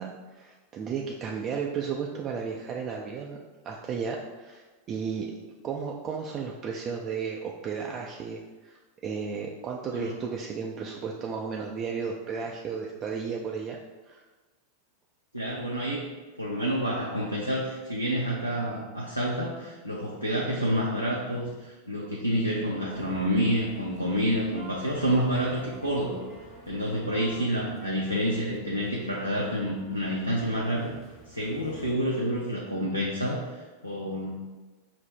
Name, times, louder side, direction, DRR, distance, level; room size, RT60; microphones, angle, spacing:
voice 1, 0.0-3.4 3.6-5.3 5.6-8.8 9.0-13.8 14.1-14.2, right 6 dB, 30° right, -1 dB, 0.4 m, -34 dB
voice 2, 15.3-16.1 16.4-26.2 26.7-30.9 31.3-34.3, equal, 90° left, -4 dB, 0.5 m, -28 dB
sound 1, 22.9-31.9, equal, 30° left, 1.2 m, -49 dB
5.2 x 2.0 x 4.4 m, 1.3 s
figure-of-eight pair, 90°, 0 cm